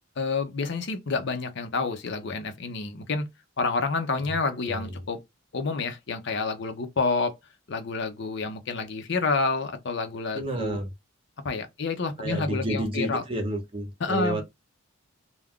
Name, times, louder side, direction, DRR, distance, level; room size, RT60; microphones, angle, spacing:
voice 1, 0.2-3.2 3.6-5.2 5.5-7.4 7.7-10.8 11.4-13.2 14.0-14.4, left 4 dB, 55° left, 0.6 m, -28 dB
voice 2, 4.7-5.0 10.3-10.9 12.2-14.4, right 1 dB, 25° right, 0.7 m, -30 dB
2.3 x 2.2 x 3.5 m
head